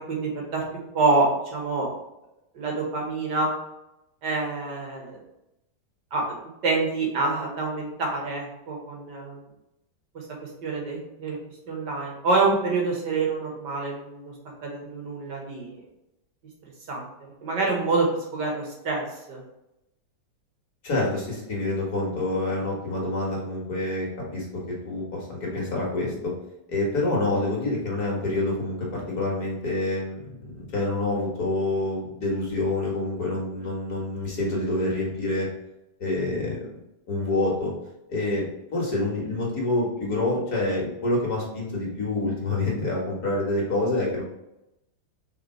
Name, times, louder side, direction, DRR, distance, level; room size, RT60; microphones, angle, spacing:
voice 1, 0.1-1.9 2.5-3.5 4.2-5.2 6.1-6.4 6.6-9.4 10.1-11.4 11.7-14.3 14.6-15.8 16.9-17.0 17.4-19.4, right 3 dB, 65° right, -1 dB, 2.0 m, -27 dB
voice 2, 20.8-26.3 26.7-35.5 36.0-36.7 37.1-37.7 38.1-38.5 38.7-44.2, left 2 dB, 55° left, -3 dB, 2.1 m, -27 dB
5.6 x 3.8 x 4.4 m, 0.88 s
omnidirectional pair, 2.1 m